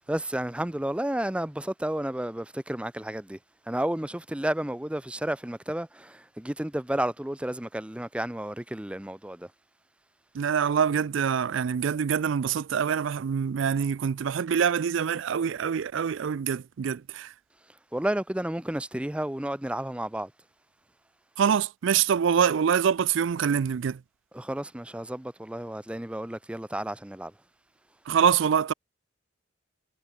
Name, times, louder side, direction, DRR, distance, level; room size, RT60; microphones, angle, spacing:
voice 1, 0.0-3.4 3.7-9.5 17.9-20.3 24.3-27.3, right 1 dB, 5° right, 0.4 m, -31 dB
voice 2, 10.3-17.3 21.4-24.0 28.1-28.7, right 7 dB, 70° right, 0.4 m, -25 dB
head